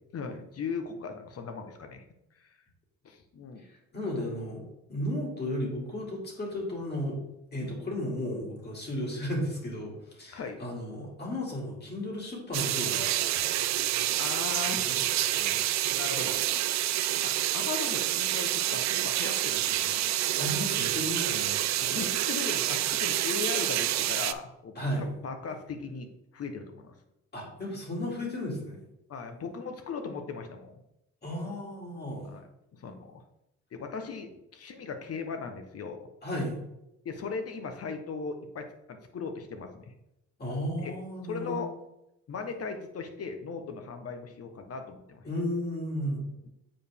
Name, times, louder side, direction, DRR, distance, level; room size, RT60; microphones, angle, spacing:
voice 1, 0.1-2.0 2.3-2.6 3.0-3.6 7.6-7.7 10.3-10.6 14.2-14.9 15.9-16.4 17.2-19.9 21.8-26.1 26.3-26.9 29.1-30.8 32.3-32.5 32.7-33.2 33.7-36.1 37.0-39.9 40.8-40.9 41.2-41.7 42.3-45.2 46.4-46.5, left 5 dB, 50° left, 6 dB, 1.0 m, -38 dB
voice 2, 3.6-4.6 4.9-7.2 7.5-13.2 14.8-15.6 20.4-21.7 24.8-25.0 27.3-28.8 31.2-32.3 36.2-36.6 40.4-41.6 45.2-46.3, left 1 dB, 35° left, -2 dB, 2.6 m, -34 dB
sound 1, 12.5-24.3, right 13 dB, 65° right, 0.4 m, -28 dB
7.5 x 4.7 x 3.5 m, 0.85 s
cardioid pair, 90°, 30 cm